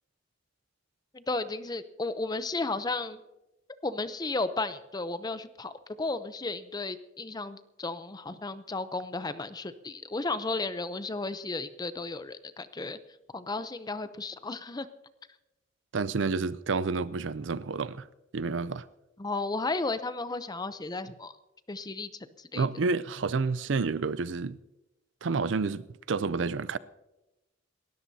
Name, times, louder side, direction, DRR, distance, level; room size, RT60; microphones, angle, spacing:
voice 1, 1.1-3.2 3.8-5.7 6.0-13.0 13.3-14.9 19.2-21.3 21.7-22.1 22.5-22.7, left 3 dB, 20° left, 0.6 m, -34 dB
voice 2, 15.9-18.1 18.3-18.8 22.5-24.6 25.2-26.8, right 4 dB, 70° right, 0.5 m, -29 dB
28.0 x 13.5 x 2.8 m
head